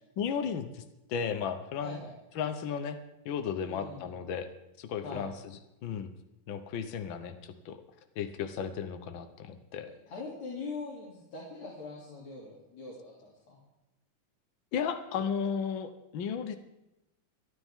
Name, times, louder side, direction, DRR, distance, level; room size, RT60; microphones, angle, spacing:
voice 1, 0.2-0.8 1.1-2.0 2.3-3.0 3.2-4.5 4.8-5.3 5.8-6.1 6.5-7.8 8.2-9.9 14.7-16.6, left 7 dB, 75° left, 8 dB, 1.1 m, -34 dB
voice 2, 1.8-2.1 3.6-4.2 5.0-5.3 9.8-13.6, left 3 dB, 60° left, -5 dB, 4.2 m, -42 dB
28.5 x 9.8 x 3.7 m, 0.93 s
omnidirectional pair, 3.6 m